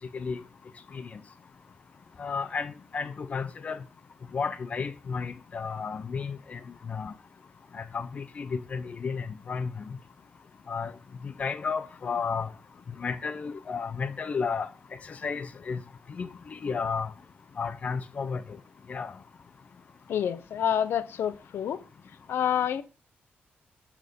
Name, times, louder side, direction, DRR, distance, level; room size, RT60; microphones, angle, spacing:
voice 1, 2.2-3.8 4.3-6.6 6.9-7.1 7.7-9.9 10.7-10.9 11.2-12.5 13.0-14.7 15.0-15.8 16.1-17.1 17.6-18.4 18.9-19.1, left 5 dB, 40° left, 0.7 m, -33 dB
voice 2, 20.1-21.8 22.3-22.8, left 9 dB, 85° left, 1.0 m, -28 dB
13.0 x 6.1 x 5.4 m
wide cardioid pair, 165°, 4 cm